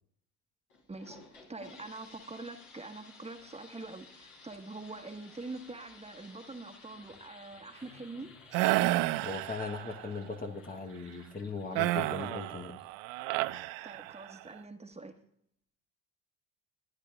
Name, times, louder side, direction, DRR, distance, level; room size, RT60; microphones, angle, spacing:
sound 1, 0.7-13.2, left 3 dB, 85° left, 3.5 m, -56 dB
voice 1, 1.5-8.3 13.8-15.2, right 3 dB, 15° right, 4 dB, 1.4 m, -44 dB
sound 2, 8.5-10.1 11.8-14.4, right 18 dB, 70° right, 0.5 m, -31 dB
voice 2, 9.2-12.8, left 4 dB, 20° left, 3 dB, 1.1 m, -39 dB
21.0 x 10.5 x 2.4 m, 0.69 s
hypercardioid pair, 70°, 37 cm